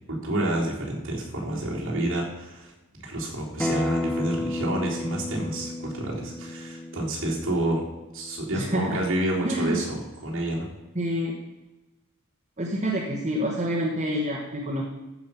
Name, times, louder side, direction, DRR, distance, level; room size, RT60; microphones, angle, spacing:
voice 1, 0.1-2.7 3.0-7.9 8.1-10.7, right 1 dB, 60° right, -4 dB, 3.6 m, -29 dB
Acoustic guitar, 3.6-8.8, left 1 dB, 5° left, 0.7 m, -33 dB
voice 2, 8.5-9.1 9.4-9.8 10.9-11.3 12.6-14.8, equal, 30° right, -2 dB, 1.3 m, -27 dB
14.5 x 5.3 x 5.7 m, 1.1 s
head